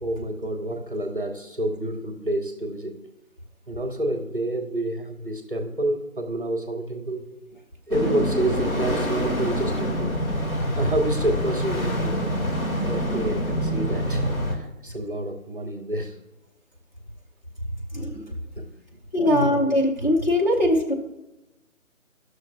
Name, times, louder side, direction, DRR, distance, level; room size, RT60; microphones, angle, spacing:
voice 1, 0.0-3.1 3.7-7.3 7.9-10.1 10.5-12.4 12.8-14.2 14.5-16.2 18.6-18.7 19.3-19.6, right 1 dB, 40° right, 5 dB, 0.6 m, -28 dB
sound 1, 7.9-14.5, equal, 85° left, 1.6 m, -26 dB
voice 2, 17.9-18.3 19.1-20.9, left 1 dB, 35° left, 0 dB, 0.8 m, -21 dB
14.0 x 6.4 x 2.4 m, 0.98 s
figure-of-eight pair, 175°, 42 cm